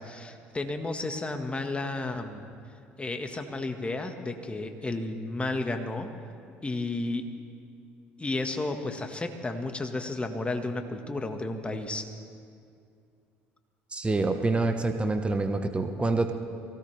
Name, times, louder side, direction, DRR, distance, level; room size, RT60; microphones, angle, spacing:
voice 1, 0.0-2.5 3.0-6.1 6.6-7.3 8.2-12.0, left 2 dB, 20° left, 5 dB, 1.7 m, -32 dB
voice 2, 13.9-16.3, right 3 dB, 20° right, 6 dB, 1.2 m, -26 dB
23.0 x 17.0 x 3.5 m, 2.4 s
hypercardioid pair, 65°, 6 cm